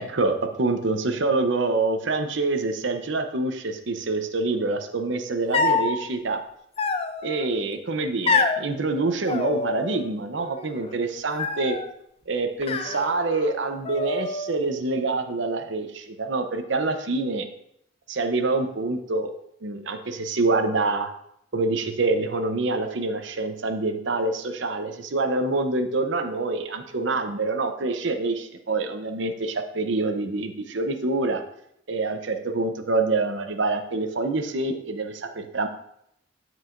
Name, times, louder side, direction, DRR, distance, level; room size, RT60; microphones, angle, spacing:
voice 1, 0.0-6.4 7.2-11.8 12.3-17.5 18.1-19.3 19.6-21.1 21.5-31.4 31.9-35.7, right 3 dB, 65° right, 7 dB, 0.7 m, -26 dB
sound 1, 5.5-6.0 6.8-7.4 8.3-8.6 9.3-10.1 10.4-10.9 11.4-11.9 12.6-13.5 13.8-14.6, left 4 dB, 30° left, 0.5 m, -26 dB
14.0 x 4.8 x 2.5 m, 0.75 s
head